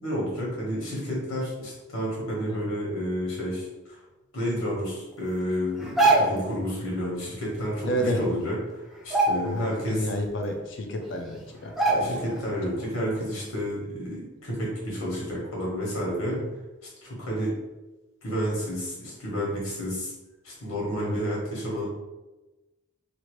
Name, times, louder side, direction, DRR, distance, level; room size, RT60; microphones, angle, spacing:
voice 1, 0.0-4.0 4.3-8.6 9.0-10.1 11.9-16.4 17.0-17.6 18.2-20.1 20.4-21.9, equal, 85° left, -4 dB, 1.3 m, -30 dB
sound 1, 5.8-6.5 8.0-8.1 8.4-8.6 9.0-9.8 10.2-10.3 11.1-11.2 11.8-12.4 12.8-12.9, right 2 dB, ahead, 0.4 m, -23 dB
voice 2, 7.9-8.2 9.4-12.2 16.4-16.5 21.0-21.2, equal, 60° left, 3 dB, 0.5 m, -30 dB
2.8 x 2.5 x 3.1 m, 1.1 s
head